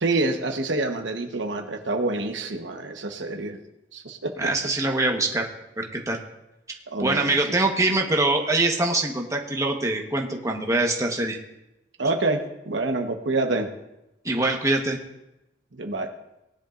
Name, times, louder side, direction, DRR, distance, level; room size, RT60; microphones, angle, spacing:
voice 1, 0.0-3.6 3.9-4.5 6.9-7.4 12.0-13.7 15.7-16.1, right 2 dB, 80° right, 4 dB, 1.2 m, -27 dB
voice 2, 4.4-5.5 5.8-6.2 7.0-11.4 14.2-15.0, right 2 dB, 20° right, 1 dB, 1.2 m, -23 dB
19.0 x 10.5 x 2.6 m, 0.92 s
head